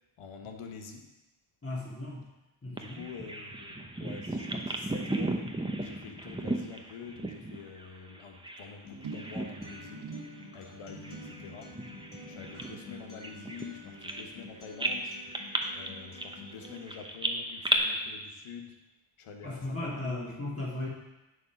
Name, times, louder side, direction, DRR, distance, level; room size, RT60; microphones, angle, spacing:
voice 1, 0.2-1.1 2.7-5.4 5.8-10.1 10.5-11.7 12.3-15.2 15.7-18.7 19.2-20.3, left 6 dB, 85° left, 3 dB, 1.1 m, -46 dB
voice 2, 1.6-2.3 2.6-3.1 19.4-20.9, left 2 dB, 25° left, -5 dB, 1.9 m, -36 dB
Bird vocalization bird call bird song, 2.8-8.7 9.0-9.9 10.2-10.4 11.0-14.5 14.8-17.8, right 2 dB, 10° right, 0.7 m, -35 dB
Acoustic guitar, 8.8-16.8, left 3 dB, 65° left, 2.2 m, -49 dB
sound 1, 9.0-15.6 15.9-16.3 16.6-16.7, right 5 dB, 70° right, 1.2 m, -49 dB
9.5 x 3.4 x 5.7 m, 0.99 s
cardioid pair, 65°, 50 cm